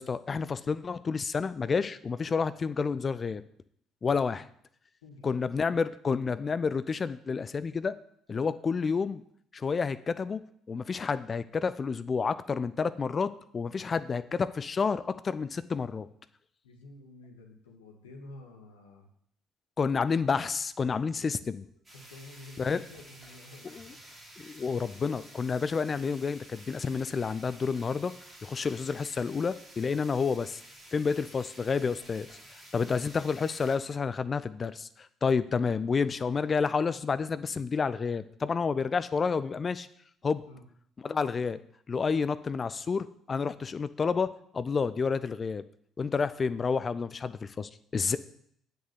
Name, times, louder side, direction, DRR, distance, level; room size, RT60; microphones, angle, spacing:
voice 1, 0.0-3.4 4.0-4.5 5.2-7.9 8.3-9.2 9.5-10.4 10.7-16.1 19.8-21.6 22.6-22.8 23.7-23.9 24.4-28.1 28.4-30.6 30.9-32.3 32.7-39.9 40.2-40.4 41.0-41.6 41.9-45.6 46.0-48.2, left 5 dB, 35° left, 14 dB, 0.5 m, -30 dB
voice 2, 5.0-5.4 16.6-19.1 21.2-21.5 21.9-24.0 40.4-40.6, left 2 dB, 75° left, 2 dB, 1.6 m, -50 dB
sound 1, 21.8-33.8, right 1 dB, 20° right, 3.3 m, -51 dB
8.0 x 6.5 x 6.6 m, 0.67 s
figure-of-eight pair, 50°, 0 cm